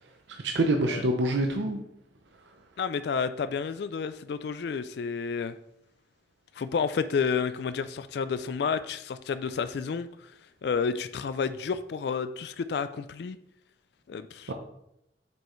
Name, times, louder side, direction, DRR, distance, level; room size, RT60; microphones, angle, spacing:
voice 1, 0.3-1.8 14.5-14.6, right 1 dB, 75° right, 4 dB, 0.6 m, -26 dB
voice 2, 2.8-5.6 6.6-10.3 10.6-13.4 14.1-14.5, left 5 dB, 65° left, 12 dB, 0.3 m, -30 dB
7.6 x 5.4 x 3.1 m, 0.79 s
head